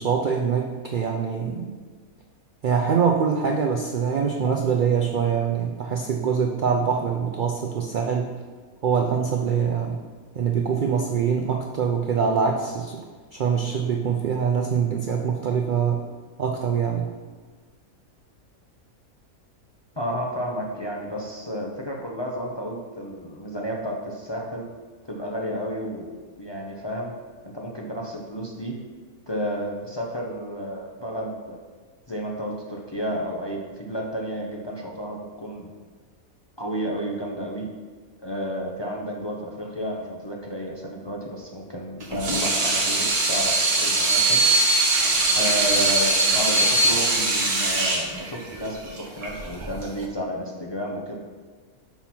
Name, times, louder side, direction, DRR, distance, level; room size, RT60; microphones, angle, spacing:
voice 1, 0.0-1.7 2.6-8.4 8.8-10.0 10.3-13.0 13.3-16.1 16.4-17.1, right 6 dB, 85° right, 2 dB, 0.4 m, -24 dB
voice 2, 20.0-24.7 25.0-27.1 27.4-28.8 29.3-31.6 32.1-35.7 36.6-37.7 38.2-44.4 45.3-51.1, equal, 30° left, -1 dB, 0.5 m, -31 dB
Water tap faucet / Sink (filling or washing), 42.0-50.0, right 2 dB, 40° right, 1.0 m, -21 dB
5.8 x 4.2 x 5.9 m, 1.4 s
omnidirectional pair, 1.5 m